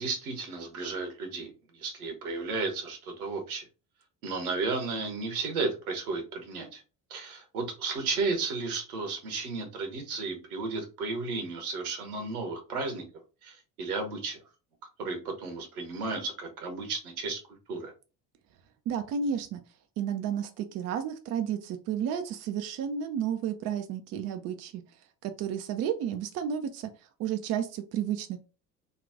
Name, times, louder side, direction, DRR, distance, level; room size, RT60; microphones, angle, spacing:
voice 1, 0.0-3.7 4.2-6.8 7.1-13.0 13.4-14.4 15.0-17.4 17.7-17.9, right 3 dB, 65° right, 5 dB, 1.2 m, -33 dB
voice 2, 18.9-19.6 20.0-24.8 25.2-28.4, right 8 dB, 35° right, 7 dB, 0.5 m, -32 dB
4.0 x 2.4 x 3.6 m, 0.33 s
figure-of-eight pair, 60°, 47 cm